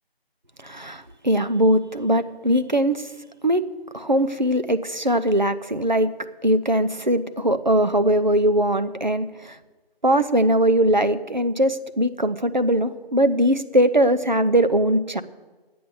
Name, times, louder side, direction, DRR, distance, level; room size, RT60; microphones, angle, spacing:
voice 1, 0.6-3.0 3.4-3.6 3.9-6.1 6.4-9.6 10.0-15.2, right 1 dB, 45° right, 10 dB, 0.6 m, -20 dB
10.5 x 8.6 x 6.8 m, 1.3 s
figure-of-eight pair, 170°, 31 cm